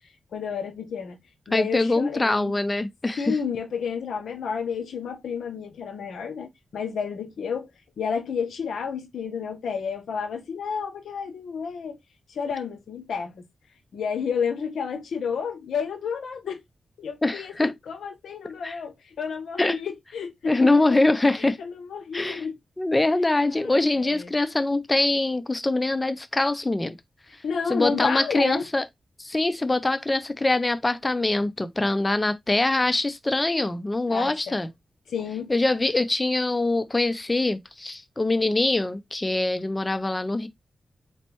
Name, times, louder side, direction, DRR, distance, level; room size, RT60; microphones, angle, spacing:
voice 1, 0.3-1.2 1.5-2.5 3.2-7.7 8.0-12.0 12.3-13.4 13.9-16.6 17.0-21.0 21.6-22.5 23.2-24.3 27.4-28.7 34.1-34.6 35.1-35.5, left 6 dB, 85° left, 0.8 m, -31 dB
voice 2, 1.5-3.2 17.2-17.7 18.6-18.7 19.6-19.8 20.4-21.6 22.1-22.4 22.8-27.0 27.7-28.9 29.2-34.7 35.5-40.5, left 2 dB, 25° left, 0.5 m, -23 dB
4.0 x 3.2 x 3.0 m
cardioid pair, 50°, 0 cm